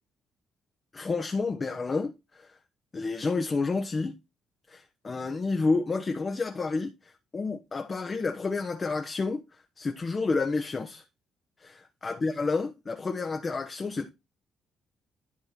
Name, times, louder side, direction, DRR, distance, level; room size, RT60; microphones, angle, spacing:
voice 1, 0.9-2.5 2.9-4.1 4.7-6.9 7.3-9.4 9.8-11.0 12.0-14.1, left 3 dB, 35° left, 1.1 m, -29 dB
11.5 x 4.6 x 4.3 m
cardioid pair, 90°, 0 cm